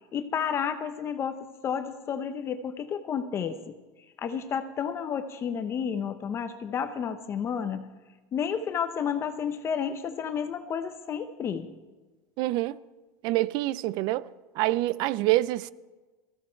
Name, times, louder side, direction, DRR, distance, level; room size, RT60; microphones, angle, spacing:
voice 1, 0.1-3.7 4.2-7.9 8.3-11.7, left 7 dB, 25° left, 0.8 m, -31 dB
voice 2, 12.4-12.8 13.2-14.2 14.6-15.7, right 17 dB, 50° right, 0.5 m, -26 dB
19.0 x 15.0 x 4.5 m
supercardioid pair, 155°, 9 cm